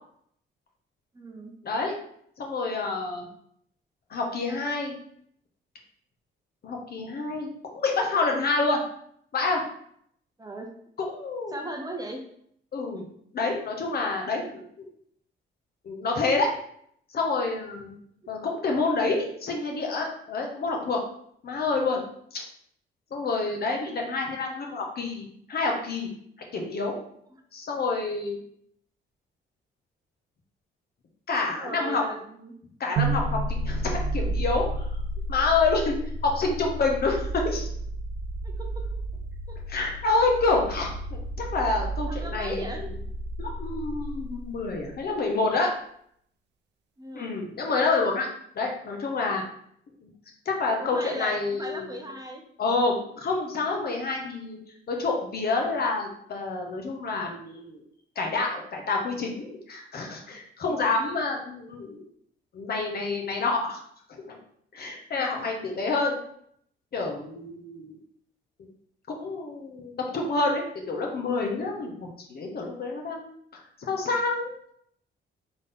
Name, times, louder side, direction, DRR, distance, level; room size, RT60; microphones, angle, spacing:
voice 1, 1.1-1.5 10.4-10.7 11.5-12.2 12.9-13.0 31.5-32.5 38.4-38.8 39.5-39.6 42.1-42.8 47.0-47.3 50.8-52.4 60.2-60.4 60.6-60.9 65.1-65.4, right 1 dB, 20° right, 2 dB, 0.7 m, -38 dB
voice 2, 2.4-3.3 4.1-4.9 6.6-8.8 9.3-9.6 11.1-11.6 12.7-13.0 13.3-14.9 15.8-16.5 17.1-17.9 18.3-21.0 21.4-22.0 22.3-22.4 23.1-26.1 26.5-26.9 27.5-28.4 31.3-32.0 32.8-34.9 35.3-37.7 39.7-42.9 43.4-45.7 47.1-48.3 48.5-49.4 50.4-51.9 52.6-54.6 54.9-57.8 58.1-62.0 62.5-63.8 64.1-64.4 64.7-66.2 66.9-68.0 69.1-73.3 73.8-74.7, left 3 dB, 50° left, 1 dB, 1.2 m, -28 dB
sound 1, 33.0-45.0, right 2 dB, 60° right, 0.5 m, -32 dB
4.0 x 3.7 x 3.6 m, 0.68 s
cardioid pair, 90°, 20 cm